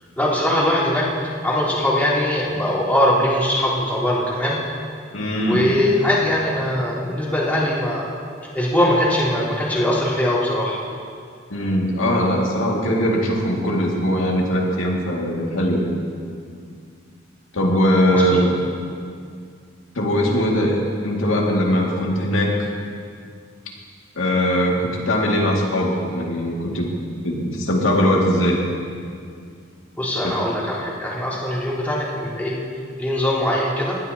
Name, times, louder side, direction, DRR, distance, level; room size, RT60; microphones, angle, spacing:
voice 1, 0.2-1.1 1.4-4.6 5.4-8.0 8.5-10.8 18.1-18.4 30.0-32.6 33.0-34.0, left 1 dB, 10° left, -10 dB, 3.7 m, -21 dB
voice 2, 5.1-5.7 11.5-15.9 17.5-18.5 19.9-22.7 24.2-26.9 27.2-28.6 30.2-30.4, equal, 90° left, -2 dB, 2.2 m, -20 dB
19.5 x 12.5 x 2.9 m, 2.3 s
head